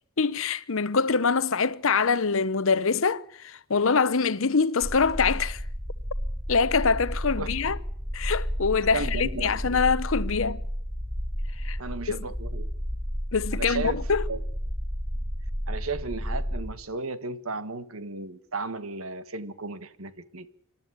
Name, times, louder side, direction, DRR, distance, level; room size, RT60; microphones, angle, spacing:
voice 1, 0.2-5.6 6.5-7.8 8.1-10.6 11.6-11.8 12.1-12.2 13.3-14.2, left 5 dB, 65° left, 0.8 m, -24 dB
sound 1, 4.8-16.7, equal, 10° right, 6.3 m, -32 dB
voice 2, 7.4-7.7 8.9-9.8 11.8-12.7 13.5-14.0 14.3-14.4 15.7-20.5, right 3 dB, 70° right, 1.6 m, -35 dB
26.5 x 12.0 x 9.9 m
head